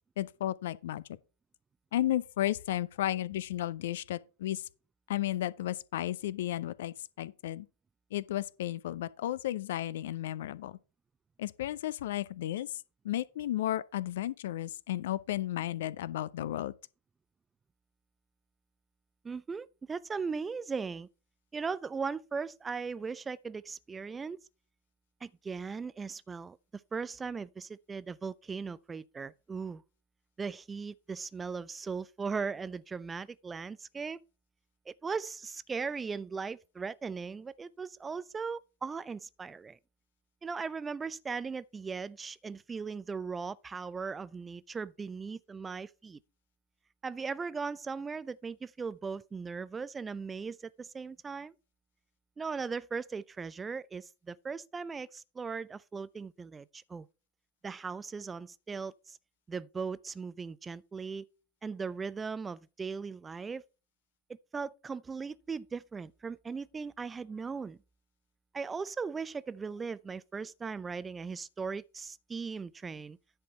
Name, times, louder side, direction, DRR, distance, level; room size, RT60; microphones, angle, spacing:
voice 1, 0.2-1.0 1.9-4.6 5.1-7.7 8.1-10.8 11.4-12.7 13.0-16.7, left 13 dB, 60° left, 0.5 m, -33 dB
voice 2, 19.2-21.1 21.5-24.4 25.2-29.8 30.4-34.2 34.9-39.8 40.4-46.2 47.0-51.5 52.4-57.1 57.6-59.2 59.5-61.3 61.6-63.6 64.3-67.8 68.5-73.2, right 5 dB, 15° right, 0.4 m, -38 dB
10.0 x 4.3 x 5.5 m
figure-of-eight pair, 95°, 0 cm